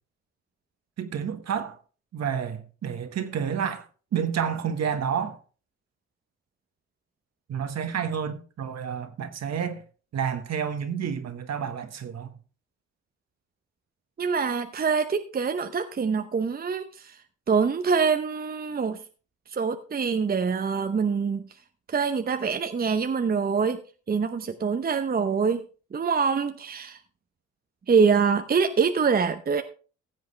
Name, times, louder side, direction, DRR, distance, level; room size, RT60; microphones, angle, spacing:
voice 1, 1.0-1.8 2.1-5.4 7.5-9.8 10.1-12.3, right 7 dB, 60° right, 1.5 m, -30 dB
voice 2, 14.2-17.2 17.5-19.0 19.5-21.4 21.9-23.8 24.1-25.6 25.9-27.0 27.9-29.6, right 5 dB, 30° right, 0.8 m, -25 dB
15.5 x 7.6 x 3.3 m
cardioid pair, 75°, 31 cm